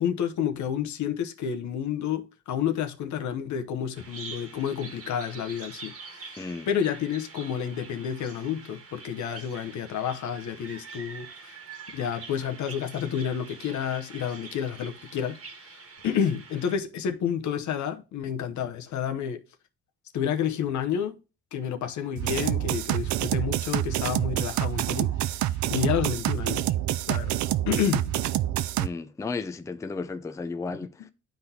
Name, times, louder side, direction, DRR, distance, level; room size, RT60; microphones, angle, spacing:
voice 1, 0.0-11.6 11.9-15.8 16.0-19.4 20.1-21.2 21.5-26.7 27.1-27.4 27.7-28.1 30.7-31.1, left 8 dB, 70° left, 0.9 m, -30 dB
Bird vocalization bird call bird song, 3.9-16.8, right 4 dB, 50° right, 1.4 m, -45 dB
voice 2, 6.4-6.7 28.8-31.1, left 4 dB, 10° left, 0.4 m, -34 dB
sound 1, 22.2-28.9, right 14 dB, 70° right, 0.5 m, -27 dB
11.5 x 4.0 x 2.8 m
cardioid pair, 90°, 30 cm